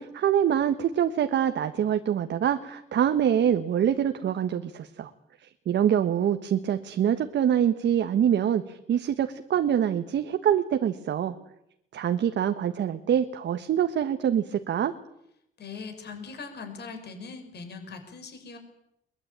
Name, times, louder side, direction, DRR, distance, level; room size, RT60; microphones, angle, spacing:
voice 1, 0.0-5.1 5.7-11.4 11.9-14.9, right 9 dB, 65° right, 8 dB, 1.4 m, -25 dB
voice 2, 15.6-18.6, left 4 dB, 55° left, 6 dB, 6.0 m, -40 dB
22.0 x 21.0 x 9.0 m, 0.79 s
cardioid pair, 90°, 20 cm